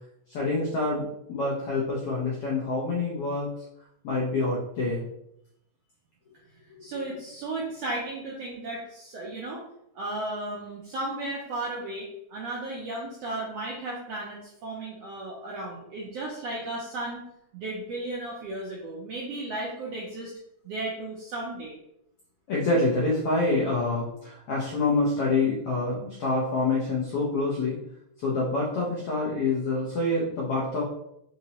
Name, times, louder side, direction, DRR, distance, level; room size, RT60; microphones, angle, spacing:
voice 1, 0.3-3.5 4.0-5.0 6.9-7.0 22.5-27.8 28.2-30.8, left 2 dB, 85° left, -4 dB, 1.3 m, -26 dB
voice 2, 6.8-9.6 9.9-17.2 17.5-20.3 20.6-21.8, right 2 dB, 80° right, -4 dB, 1.4 m, -34 dB
5.1 x 2.8 x 2.8 m, 0.77 s
omnidirectional pair, 3.6 m